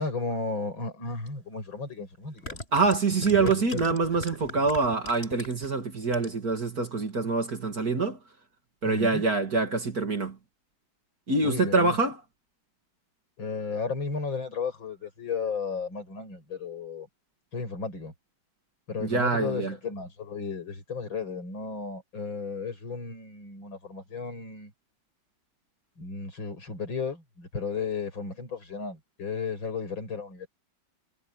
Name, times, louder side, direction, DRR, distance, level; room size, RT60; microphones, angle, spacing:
voice 1, 0.0-2.6 3.2-4.0 4.6-4.7 8.8-9.2 11.4-12.0 13.4-17.1 17.5-18.1 18.9-24.7 26.0-30.5, left 4 dB, 85° left, 6.9 m, -34 dB
sound 1, 1.3-1.4 2.2-5.7 6.0-6.5 6.8-6.9, left 1 dB, 30° left, 8.2 m, -39 dB
voice 2, 2.7-8.2 8.8-10.4 11.3-12.1 19.0-19.7, right 3 dB, 50° right, 3.0 m, -25 dB
omnidirectional pair, 2.1 m